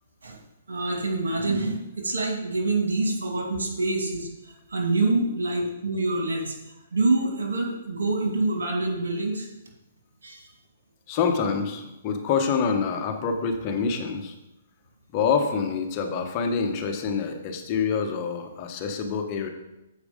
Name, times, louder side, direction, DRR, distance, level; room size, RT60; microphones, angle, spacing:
voice 1, 0.7-6.6 6.9-9.5 10.2-10.5, right 2 dB, 80° right, 1 dB, 2.2 m, -26 dB
voice 2, 11.1-14.3 15.1-19.5, left 5 dB, 35° left, 5 dB, 1.1 m, -26 dB
7.4 x 5.0 x 5.1 m, 0.92 s
hypercardioid pair, 135°, 0 cm